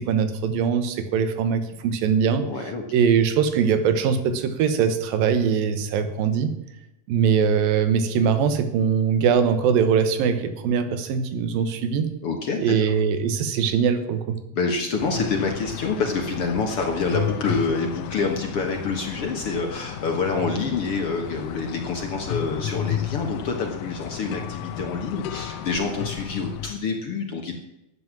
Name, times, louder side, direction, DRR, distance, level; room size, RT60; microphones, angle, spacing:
voice 1, 0.0-2.5 2.9-6.5 7.1-12.1 12.6-14.4, right 7 dB, 85° right, 10 dB, 3.0 m, -22 dB
voice 2, 2.4-2.8 12.2-12.9 14.5-27.6, left 4 dB, 55° left, 3 dB, 1.7 m, -27 dB
sound 1, 15.0-26.8, left 11 dB, 75° left, 2.2 m, -33 dB
13.0 x 9.2 x 7.4 m, 0.91 s
omnidirectional pair, 4.0 m